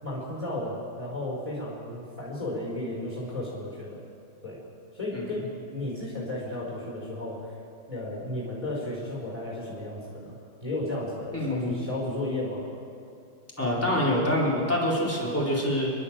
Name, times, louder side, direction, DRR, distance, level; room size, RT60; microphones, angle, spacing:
voice 1, 0.0-3.9 4.4-4.6 4.9-7.5 7.9-10.4 10.6-12.7, left 1 dB, 20° right, -3 dB, 4.6 m, -34 dB
voice 2, 11.3-11.8 13.6-15.9, left 1 dB, 5° left, -5 dB, 4.1 m, -26 dB
29.5 x 12.0 x 7.5 m, 2.6 s
omnidirectional pair, 2.0 m